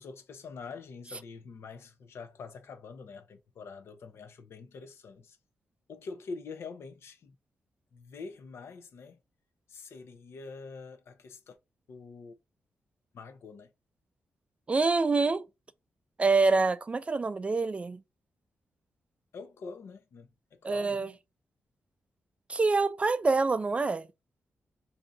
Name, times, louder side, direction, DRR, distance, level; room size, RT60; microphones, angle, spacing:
voice 1, 0.0-5.4 5.9-7.3 7.9-9.2 9.7-11.6 11.9-12.4 13.1-13.7 19.3-21.1, left 4 dB, 75° left, 0.7 m, -45 dB
voice 2, 14.7-15.4 16.2-18.0 20.6-21.1 22.5-24.1, right 3 dB, 30° right, 0.3 m, -26 dB
2.7 x 2.5 x 3.9 m
cardioid pair, 90°, 4 cm